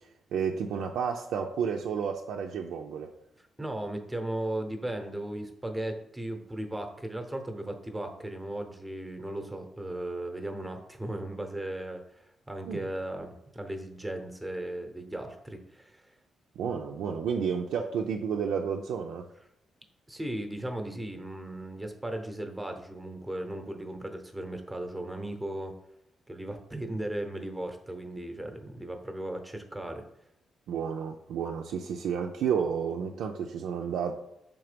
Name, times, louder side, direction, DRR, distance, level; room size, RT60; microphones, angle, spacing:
voice 1, 0.3-3.1 12.7-12.8 16.6-19.3 30.7-34.1, right 7 dB, 85° right, 1 dB, 0.4 m, -31 dB
voice 2, 3.6-16.1 20.1-25.7 26.3-30.0, right 1 dB, 10° right, 5 dB, 0.8 m, -36 dB
5.9 x 3.6 x 5.0 m, 0.80 s
cardioid pair, 110°, 0 cm